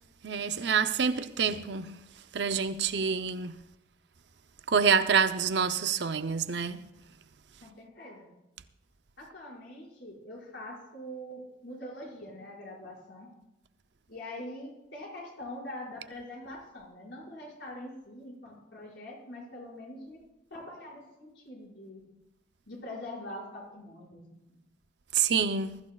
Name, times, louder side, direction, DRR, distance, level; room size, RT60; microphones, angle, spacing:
voice 1, 0.2-2.0 2.3-3.5 4.7-6.8 25.1-25.8, right 6 dB, 70° right, 0.7 m, -27 dB
voice 2, 7.6-8.3 9.2-13.3 14.1-20.2 20.5-22.0 22.7-24.2 24.5-24.6, left 1 dB, 80° left, 5.7 m, -43 dB
21.0 x 14.0 x 2.4 m
head